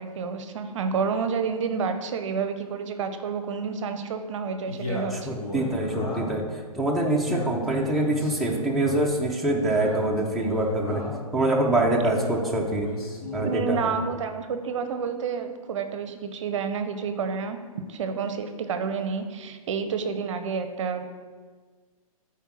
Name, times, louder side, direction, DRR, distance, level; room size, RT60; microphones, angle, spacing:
voice 1, 0.0-5.4 13.4-17.6 17.9-21.1, right 5 dB, 55° right, 8 dB, 0.6 m, -29 dB
Male speech man speaking, 4.6-6.5 7.0-9.0 9.6-11.3 12.0-14.0, left 1 dB, 85° left, 2.1 m, -34 dB
voice 2, 5.1-11.0 11.3-12.9 13.3-13.8, right 1 dB, ahead, -3 dB, 0.6 m, -25 dB
5.5 x 4.4 x 6.1 m, 1.5 s
hypercardioid pair, 135°, 19 cm